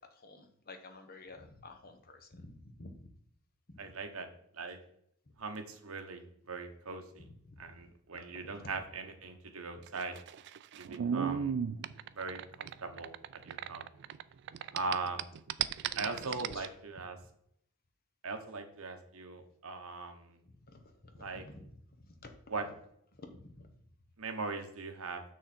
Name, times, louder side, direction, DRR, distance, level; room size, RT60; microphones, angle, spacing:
voice 1, 0.1-3.1 3.7-3.8 7.2-7.6 8.3-8.6 16.0-16.2 16.5-16.7 20.7-21.7 22.0-22.3 23.1-23.7, left 2 dB, 40° left, 6 dB, 1.0 m, -51 dB
voice 2, 3.8-4.3 4.5-4.8 5.4-7.3 7.6-10.2 10.8-11.5 12.1-13.9 14.7-15.3 16.0-17.2 18.2-20.4 21.2-21.4 22.5-22.7 24.2-25.2, right 3 dB, 65° right, 6 dB, 1.1 m, -40 dB
sound 1, 9.9-14.2 14.5-16.7, right 8 dB, 50° right, 0.3 m, -35 dB
6.6 x 6.4 x 4.3 m, 0.69 s
head